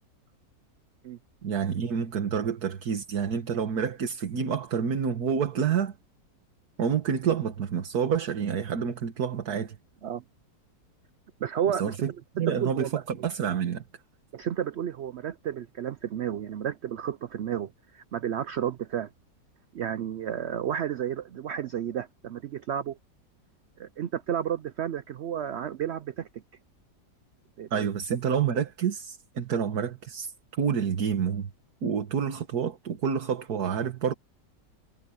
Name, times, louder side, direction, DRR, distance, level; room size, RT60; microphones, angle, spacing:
voice 1, 1.4-5.9 6.8-9.8 11.7-12.1 12.4-13.8 27.7-31.5 31.8-34.1, right 7 dB, 65° right, 1.9 m, -28 dB
voice 2, 11.4-11.9 12.5-13.0 14.3-19.1 19.7-23.0 23.8-26.3 27.6-27.9, right 9 dB, 85° right, 0.5 m, -32 dB
omnidirectional pair, 1.8 m